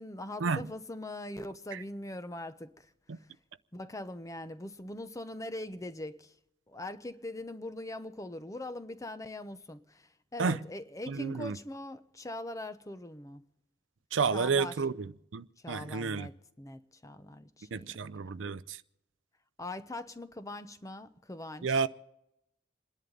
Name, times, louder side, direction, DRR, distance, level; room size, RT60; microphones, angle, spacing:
voice 1, 0.0-2.9 3.7-6.3 6.7-13.4 14.3-14.8 15.6-17.9 18.2-18.3 19.6-21.8, left 1 dB, 15° left, 0.7 m, -42 dB
voice 2, 11.1-11.6 14.1-16.3 17.7-18.8 21.6-21.9, right 5 dB, 80° right, 0.6 m, -31 dB
28.0 x 11.0 x 3.9 m
head